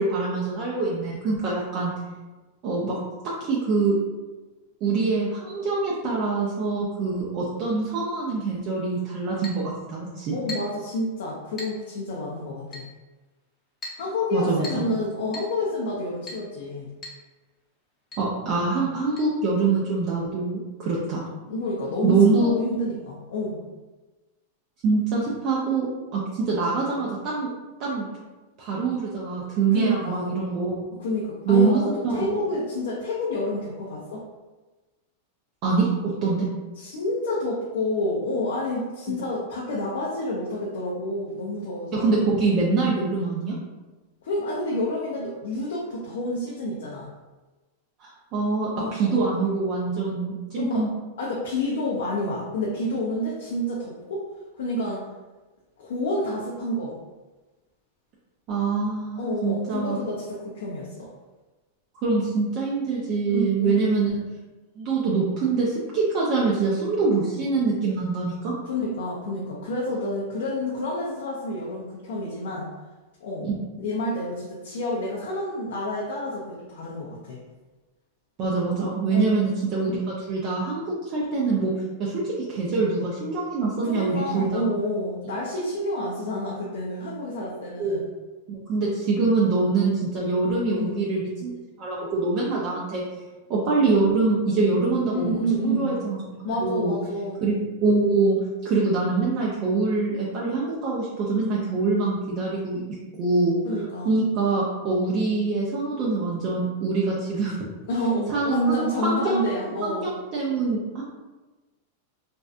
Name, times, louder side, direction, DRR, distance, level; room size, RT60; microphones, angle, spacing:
voice 1, 0.0-1.9 2.6-3.0 3.4-4.0 4.8-10.3 14.3-14.8 18.2-21.2 22.0-22.5 24.8-25.9 26.1-27.5 27.8-28.0 28.6-30.8 31.5-32.3 35.6-36.5 41.9-43.5 48.0-50.9 58.5-60.0 61.9-64.1 64.8-68.5 73.4-73.5 78.4-81.7 82.0-84.6 87.8-88.0 88.5-91.5 91.8-93.0 93.5-95.4 95.6-97.0 97.4-98.4 98.6-102.8 103.2-103.6 104.0-107.6 108.3-111.0, right 3 dB, 40° right, -6 dB, 0.4 m, -24 dB
Chink clink, 9.4-9.6 10.5-10.8 11.6-11.8 12.7-12.9 13.8-14.0 14.6-14.9 15.3-15.5 16.3-16.5 17.0-17.2 17.5-17.6 18.1-18.3 19.2-19.3, left 1 dB, 25° left, 0.6 m, -38 dB
voice 2, 10.3-12.8 14.0-16.9 21.5-23.6 29.7-30.3 30.9-34.2 36.8-42.2 44.2-47.1 48.8-49.2 50.5-50.8 51.2-54.2 54.6-55.1 55.8-57.0 59.2-61.1 63.3-63.8 68.7-72.7 73.2-73.5 73.7-77.4 79.1-79.3 83.8-88.0 90.7-91.1 95.1-96.0 96.4-97.4 103.6-104.1 107.9-110.1, left 1 dB, 80° left, -4 dB, 0.5 m, -29 dB
2.5 x 2.2 x 2.4 m, 1.2 s
supercardioid pair, 140°, 0 cm